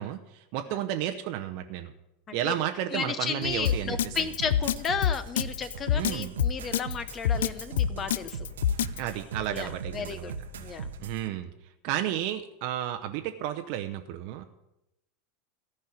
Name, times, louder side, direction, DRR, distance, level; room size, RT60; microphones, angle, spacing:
voice 1, 0.0-1.9 2.3-4.2 5.9-6.3 9.0-10.3 11.0-11.5 11.8-14.5, right 12 dB, 55° right, 6 dB, 0.7 m, -32 dB
voice 2, 2.9-8.5 9.5-10.9, left 6 dB, 30° left, 13 dB, 0.7 m, -34 dB
sound 1, 3.4-11.2, right 5 dB, 70° right, 1.1 m, -39 dB
Drum kit, 3.6-9.0, left 10 dB, 65° left, 0.3 m, -25 dB
14.0 x 5.5 x 9.4 m, 0.89 s
figure-of-eight pair, 85°, 0 cm